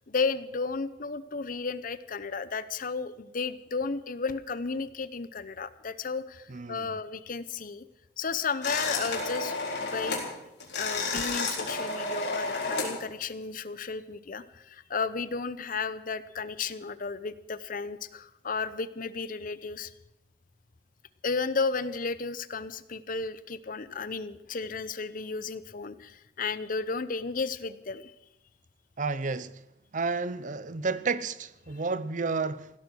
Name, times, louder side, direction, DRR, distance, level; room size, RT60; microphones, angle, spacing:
voice 1, 0.1-7.8 8.2-10.3 10.8-19.9 21.2-28.1, left 4 dB, 50° left, 0.8 m, -33 dB
voice 2, 6.5-7.0 29.0-29.6 29.9-32.8, right 4 dB, 45° right, 0.7 m, -31 dB
sound 1, 8.6-10.3 10.6-12.9, left 3 dB, 70° left, 4.1 m, -31 dB
16.0 x 13.0 x 6.2 m
head